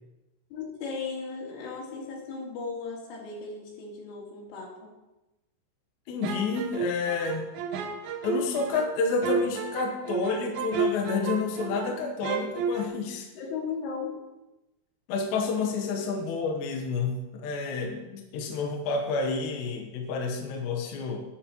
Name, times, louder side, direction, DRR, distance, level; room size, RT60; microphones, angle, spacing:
voice 1, 0.5-4.9 13.4-14.2, left 5 dB, 90° left, -3 dB, 4.8 m, -36 dB
voice 2, 6.1-7.5 8.2-13.3 15.1-21.2, left 4 dB, 70° left, 2 dB, 3.1 m, -29 dB
sound 1, 6.2-12.0 12.2-12.9, right 5 dB, 85° right, 2.1 m, -31 dB
9.9 x 8.7 x 4.4 m, 1.0 s
omnidirectional pair, 5.4 m